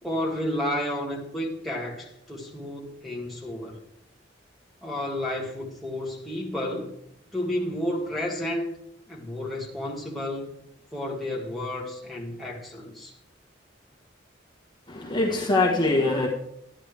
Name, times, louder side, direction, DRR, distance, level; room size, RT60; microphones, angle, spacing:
voice 1, 0.0-3.8 4.8-6.9 7.3-8.8 9.1-10.5 10.9-13.1, left 1 dB, ahead, -4 dB, 1.8 m, -31 dB
voice 2, 14.9-16.3, left 2 dB, 25° left, -1 dB, 1.4 m, -23 dB
12.5 x 10.0 x 3.4 m, 0.76 s
head